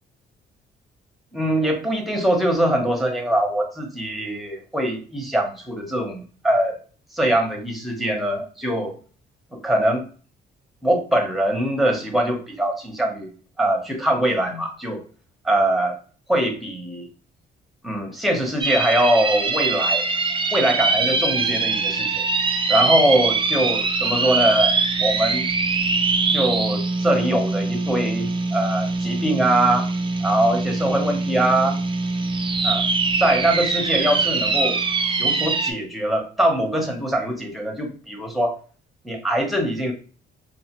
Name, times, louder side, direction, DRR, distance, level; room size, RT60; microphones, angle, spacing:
voice 1, 1.3-6.8 7.1-9.0 9.5-10.0 10.8-13.3 13.6-15.0 15.4-16.0 16.3-17.1 17.8-20.0 20.5-22.2 22.7-25.5 26.3-29.9 30.2-31.8 32.6-32.8 33.2-34.8 35.2-38.6 39.0-39.9, right 1 dB, ahead, 2 dB, 0.9 m, -22 dB
sound 1, 18.6-35.7, right 4 dB, 25° right, 0.4 m, -23 dB
2.6 x 2.4 x 2.9 m, 0.40 s
cardioid pair, 90°, 20 cm